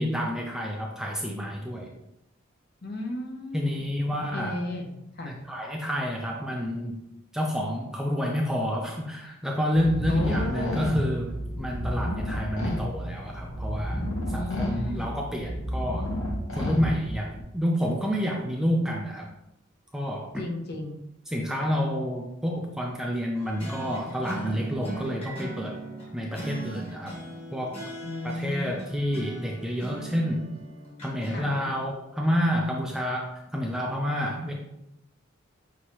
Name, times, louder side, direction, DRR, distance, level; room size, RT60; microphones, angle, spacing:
voice 1, 0.0-1.9 3.5-4.6 5.3-7.0 7.3-16.1 16.5-19.3 19.9-20.4 21.3-25.8 26.1-27.2 27.5-27.8 28.2-30.5 31.0-34.5, equal, 5° right, 0 dB, 0.4 m, -29 dB
voice 2, 2.8-3.9 4.3-5.4 10.1-10.8 14.3-15.1 20.4-21.0 28.0-29.0 31.3-31.7, left 1 dB, 50° left, 3 dB, 0.7 m, -35 dB
sound 1, 9.7-17.4, equal, 75° left, 1.1 m, -31 dB
sound 2, 23.4-31.9, right 2 dB, 30° left, 1.4 m, -39 dB
6.1 x 2.8 x 2.9 m, 0.84 s
head